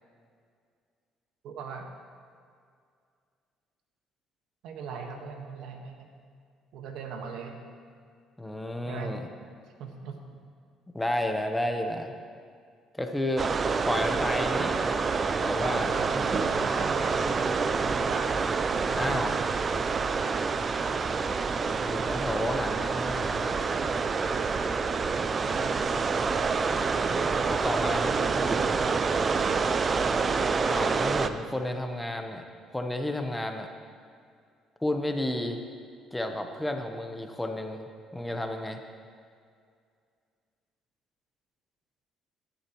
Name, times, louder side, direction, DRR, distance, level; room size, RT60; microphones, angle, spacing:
voice 1, 1.4-1.9 4.6-6.1 6.7-7.6 8.8-9.1 9.8-10.2 15.6-18.3 18.9-19.2 25.4-26.0, right 5 dB, 75° right, 3 dB, 1.5 m, -39 dB
voice 2, 8.4-9.3 10.9-12.1 12.9-13.5 13.9-15.0 15.4-15.9 19.0-19.3 21.8-23.6 27.1-28.7 30.6-32.4 32.7-33.7 34.8-35.6 36.1-38.8, left 1 dB, 5° left, 5 dB, 1.0 m, -32 dB
sound 1, 13.4-31.3, right 5 dB, 30° right, 0.5 m, -27 dB
17.0 x 10.0 x 3.1 m, 2.2 s
cardioid pair, 110°, 0 cm